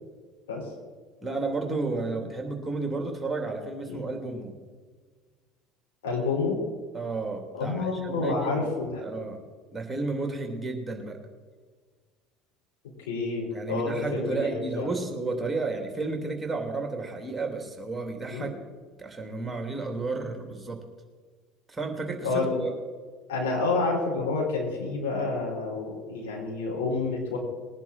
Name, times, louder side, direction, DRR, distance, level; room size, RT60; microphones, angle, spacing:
voice 1, 1.2-4.5 6.9-8.7 9.0-9.4 9.7-11.2 13.5-18.5 19.0-20.8 21.7-22.7, right 3 dB, 10° right, 3 dB, 2.9 m, -32 dB
voice 2, 6.0-6.6 7.6-9.0 13.1-14.9 18.3-18.5 22.2-22.6 23.3-27.4, left 3 dB, 75° left, -2 dB, 5.1 m, -29 dB
20.5 x 10.5 x 4.4 m, 1.5 s
figure-of-eight pair, 65°, 0 cm